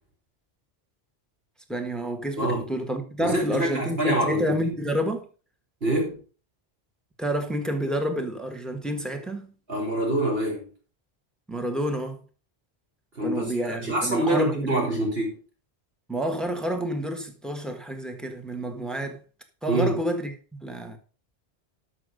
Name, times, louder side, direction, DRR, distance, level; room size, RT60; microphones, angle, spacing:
voice 1, 1.7-5.3 7.2-9.5 11.5-12.2 13.2-15.0 16.1-19.2 19.6-21.0, right 1 dB, ahead, 1.6 m, -29 dB
voice 2, 3.2-4.5 5.8-6.2 9.7-10.7 13.2-13.5 13.8-15.4 19.7-20.0, right 1 dB, 65° right, 4.5 m, -25 dB
12.5 x 6.5 x 5.1 m
omnidirectional pair, 1.1 m